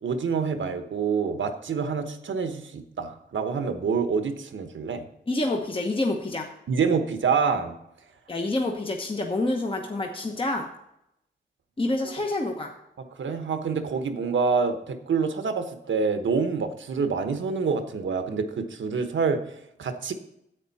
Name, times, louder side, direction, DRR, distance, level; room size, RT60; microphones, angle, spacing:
voice 1, 0.0-5.1 6.7-7.8 12.0-12.1 13.0-20.1, right 5 dB, 80° right, 8 dB, 1.1 m, -27 dB
voice 2, 5.3-6.5 8.3-10.7 11.8-12.7, left 2 dB, 25° left, 2 dB, 1.0 m, -27 dB
10.0 x 8.3 x 4.1 m, 0.80 s
wide cardioid pair, 115°, 19 cm